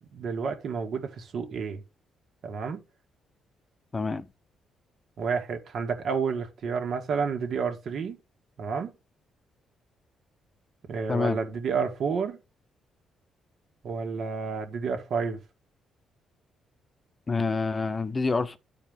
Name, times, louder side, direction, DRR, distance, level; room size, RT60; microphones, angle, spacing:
voice 1, 0.1-1.8 2.4-2.8 5.2-8.2 8.6-8.9 10.9-12.4 13.8-15.4, right 5 dB, 65° right, 1.9 m, -30 dB
voice 2, 3.9-4.2 11.1-11.4 17.3-18.6, left 4 dB, 30° left, 0.8 m, -27 dB
11.0 x 4.8 x 3.7 m
cardioid pair, 90°, 0 cm